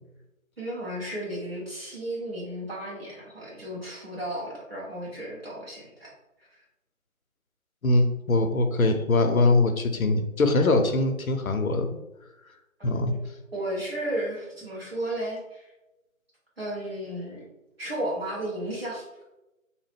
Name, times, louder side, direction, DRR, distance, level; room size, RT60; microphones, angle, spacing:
voice 1, 0.6-6.1 12.8-13.2 13.5-15.7 16.6-17.4 17.8-19.0, right 1 dB, 45° right, -6 dB, 1.2 m, -34 dB
voice 2, 7.8-12.0 12.8-13.1, left 2 dB, 85° left, 7 dB, 0.6 m, -22 dB
2.8 x 2.0 x 3.3 m, 0.95 s
figure-of-eight pair, 170°, 41 cm